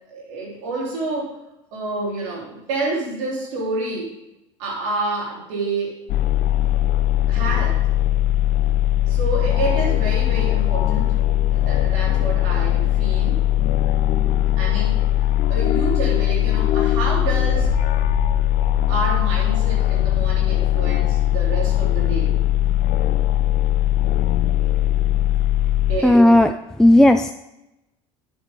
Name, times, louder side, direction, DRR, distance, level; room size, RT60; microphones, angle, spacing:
voice 1, 0.1-1.4 1.7-4.1 4.6-6.0 7.3-7.8 9.1-11.1 11.5-13.4 14.6-15.0 15.5-17.7 18.9-22.4 25.9-26.3, right 2 dB, 75° right, -3 dB, 3.9 m, -28 dB
sound 1, 6.1-26.0, left 13 dB, 60° left, 0.6 m, -20 dB
sound 2, 17.1-19.9, right 10 dB, 55° right, 2.0 m, -33 dB
voice 2, 26.0-26.5 26.8-27.3, left 1 dB, 5° left, 7 dB, 0.4 m, -13 dB
10.0 x 8.0 x 3.8 m, 0.89 s
hypercardioid pair, 80°, 16 cm